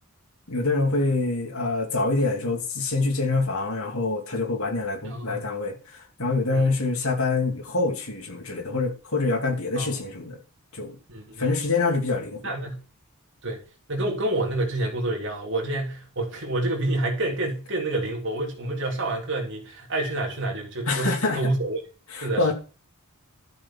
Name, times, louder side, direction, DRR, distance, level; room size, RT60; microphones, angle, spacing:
voice 1, 0.5-10.4 10.7-11.0 11.4-12.5 20.9-21.5 22.1-22.5, left 3 dB, 75° left, 2.8 m, -26 dB
voice 2, 5.0-5.4 6.5-6.7 9.8-10.0 11.1-11.5 12.4-12.8 13.4-13.6 13.9-21.8 22.2-22.5, right 2 dB, 55° right, 3.5 m, -28 dB
12.5 x 7.2 x 5.8 m
head